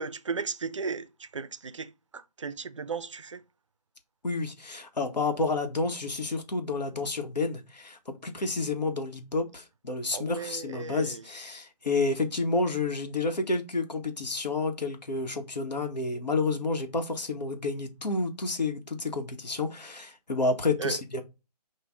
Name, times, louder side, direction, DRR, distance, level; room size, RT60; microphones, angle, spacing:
voice 1, 0.0-3.4 10.1-11.2 20.8-21.0, right 5 dB, 50° right, 0.4 m, -35 dB
voice 2, 4.2-21.2, left 3 dB, 85° left, 1.3 m, -30 dB
5.8 x 2.5 x 3.6 m
figure-of-eight pair, 165°, 21 cm